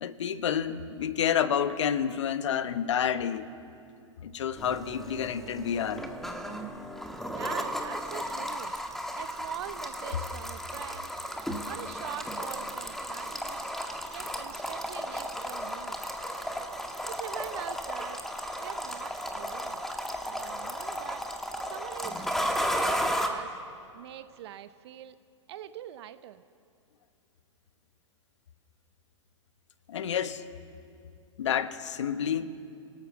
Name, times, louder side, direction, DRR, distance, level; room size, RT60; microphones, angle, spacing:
voice 1, 0.0-3.5 4.2-6.0 29.9-30.4 31.4-32.5, left 8 dB, 70° left, 12 dB, 1.2 m, -29 dB
sound 1, 4.6-23.3, equal, ahead, 1.8 m, -34 dB
voice 2, 7.3-8.7 9.2-11.1 11.6-13.7 14.1-16.0 17.0-18.3 18.6-19.8 20.2-21.2 21.7-23.5 23.9-25.2 25.5-26.4, right 12 dB, 55° right, 13 dB, 0.9 m, -43 dB
28.5 x 18.5 x 7.1 m, 2.4 s
hypercardioid pair, 105°, 16 cm